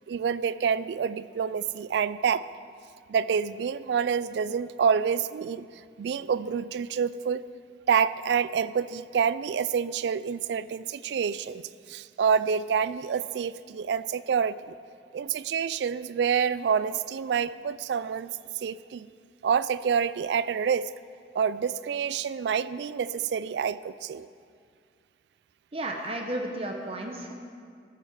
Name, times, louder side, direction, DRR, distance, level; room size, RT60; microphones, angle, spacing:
voice 1, 0.1-2.5 3.1-7.4 7.9-11.6 11.9-14.8 15.1-19.1 19.4-20.9 21.3-24.3, right 7 dB, 75° right, 17 dB, 0.3 m, -27 dB
voice 2, 25.7-27.3, right 1 dB, 35° right, 2 dB, 0.8 m, -33 dB
13.5 x 7.5 x 4.9 m, 2.3 s
head